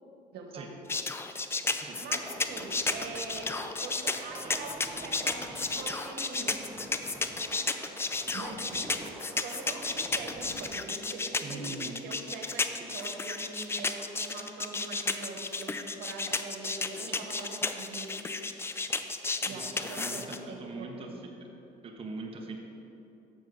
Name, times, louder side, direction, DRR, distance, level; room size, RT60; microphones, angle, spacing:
voice 1, 0.3-0.9 2.0-6.6 8.3-9.0 9.4-15.7 16.0-18.1 19.4-21.2, right 3 dB, 80° right, 2 dB, 1.2 m, -43 dB
sound 1, 0.9-20.4, left 3 dB, 15° left, 0.4 m, -32 dB
sound 2, 1.8-10.6, right 1 dB, 15° right, 1.6 m, -48 dB
voice 2, 11.4-12.0 19.5-21.3 21.8-22.6, right 3 dB, 35° right, 1 dB, 0.9 m, -42 dB
7.3 x 6.3 x 4.7 m, 3.0 s
cardioid pair, 110°, 17 cm